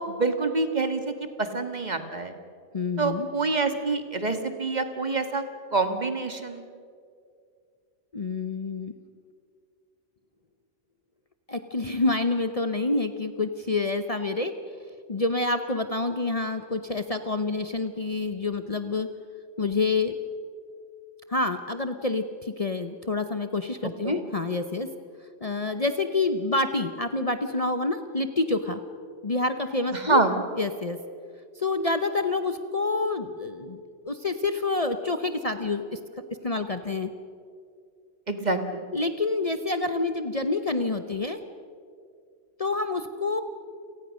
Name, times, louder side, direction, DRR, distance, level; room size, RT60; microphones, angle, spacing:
voice 1, 0.0-2.3 3.0-5.4 5.7-6.7 24.0-24.2 29.9-30.4 38.3-38.9, right 3 dB, 35° right, 7 dB, 1.7 m, -26 dB
voice 2, 2.7-3.3 8.1-8.9 11.5-14.5 15.1-19.1 19.6-20.2 21.3-24.9 25.4-28.8 29.2-30.2 30.5-31.0 31.6-36.0 36.4-37.1 38.9-41.4 42.6-43.4, left 3 dB, 35° left, 8 dB, 0.9 m, -27 dB
29.5 x 18.5 x 6.4 m, 2.3 s
omnidirectional pair, 1.2 m